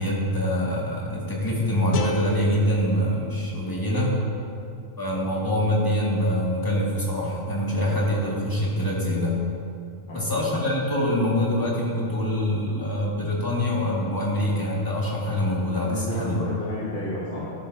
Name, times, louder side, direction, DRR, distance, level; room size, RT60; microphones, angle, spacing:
voice 1, 0.0-4.2 5.0-9.4 10.0-16.4, left 1 dB, 15° left, -5 dB, 2.0 m, -25 dB
sound 1, 1.9-5.0, left 2 dB, 85° left, 1.1 m, -33 dB
voice 2, 10.1-10.4 15.8-17.5, left 1 dB, 45° left, -7 dB, 1.6 m, -32 dB
13.5 x 11.0 x 2.7 m, 2.5 s
omnidirectional pair, 1.3 m